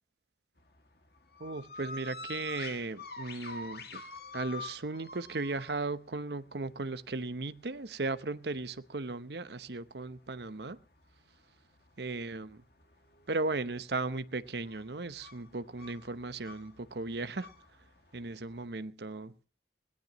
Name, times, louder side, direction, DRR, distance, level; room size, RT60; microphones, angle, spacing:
sound 1, 0.6-18.6, left 3 dB, 55° left, 2.3 m, -48 dB
voice 1, 1.4-4.0 4.3-10.8 12.0-12.6 13.3-17.5 18.1-19.3, right 3 dB, 65° right, 0.9 m, -36 dB
21.5 x 18.0 x 3.1 m
head